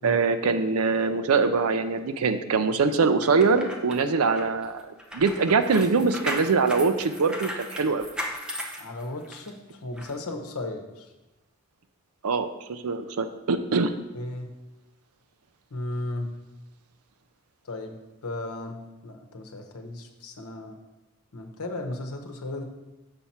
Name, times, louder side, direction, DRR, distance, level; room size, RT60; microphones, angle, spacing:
voice 1, 0.0-8.1 12.2-13.9, right 4 dB, 80° right, 9 dB, 0.5 m, -23 dB
sound 1, 3.2-9.5 10.0-10.1, equal, 5° right, 0.6 m, -36 dB
voice 2, 8.8-11.1 14.1-14.5 15.7-16.3 17.6-20.8 21.3-22.6, left 2 dB, 85° left, 4 dB, 0.9 m, -35 dB
6.9 x 5.8 x 4.2 m, 1.0 s
head